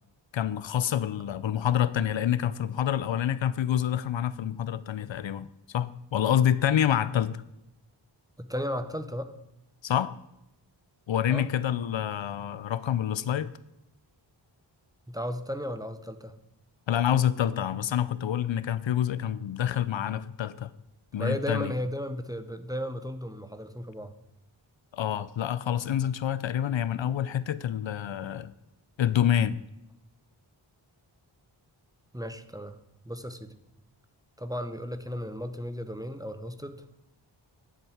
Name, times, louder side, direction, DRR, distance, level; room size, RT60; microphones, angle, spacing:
voice 1, 0.3-7.4 9.8-10.1 11.1-13.5 16.9-20.7 21.1-21.7 24.9-28.5 29.0-29.6, left 10 dB, 70° left, 17 dB, 0.6 m, -27 dB
voice 2, 8.4-9.3 11.3-11.5 15.1-16.3 21.2-24.1 32.1-32.8 33.0-33.5 34.4-36.9, equal, 10° right, 9 dB, 0.7 m, -34 dB
10.5 x 7.6 x 4.9 m, 0.87 s
wide cardioid pair, 105°, 47 cm